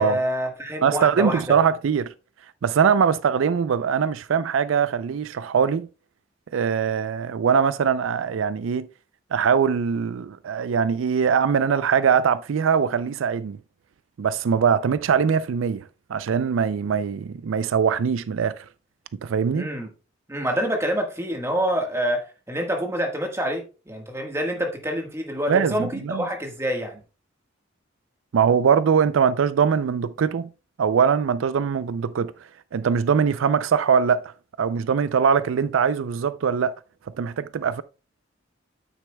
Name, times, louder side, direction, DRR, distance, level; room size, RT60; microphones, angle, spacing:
voice 1, 0.0-1.6 19.5-19.9 20.3-27.0, equal, 15° right, 1.4 m, -27 dB
voice 2, 0.8-2.1 2.6-5.9 6.5-8.9 9.3-13.6 14.2-18.6 19.2-19.7 25.5-26.2 28.3-30.5 30.8-32.3 32.7-34.3 34.6-36.7 37.2-37.8, right 6 dB, 90° right, 0.4 m, -22 dB
9.1 x 8.0 x 2.2 m
head